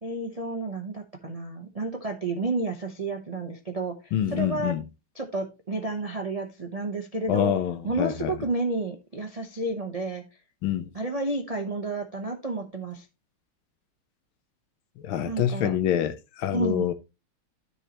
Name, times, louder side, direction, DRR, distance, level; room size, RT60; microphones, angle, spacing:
voice 1, 0.0-4.7 5.1-7.6 7.8-10.2 10.9-13.1 15.3-15.8 16.5-16.9, right 2 dB, 80° right, 0.3 m, -31 dB
voice 2, 4.1-4.8 7.3-8.3 10.6-10.9 15.0-16.9, left 10 dB, 70° left, 1.5 m, -26 dB
13.0 x 4.8 x 2.9 m
omnidirectional pair, 2.4 m